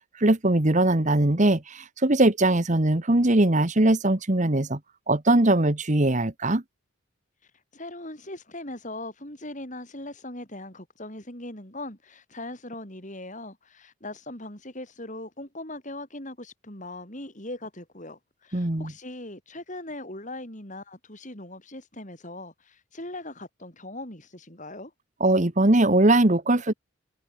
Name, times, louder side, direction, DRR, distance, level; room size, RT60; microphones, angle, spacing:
voice 1, 0.2-4.8 5.1-6.6 18.5-18.9 25.2-26.7, right 1 dB, 35° right, 1.3 m, -21 dB
voice 2, 7.7-24.9, left 1 dB, 35° left, 5.5 m, -40 dB
head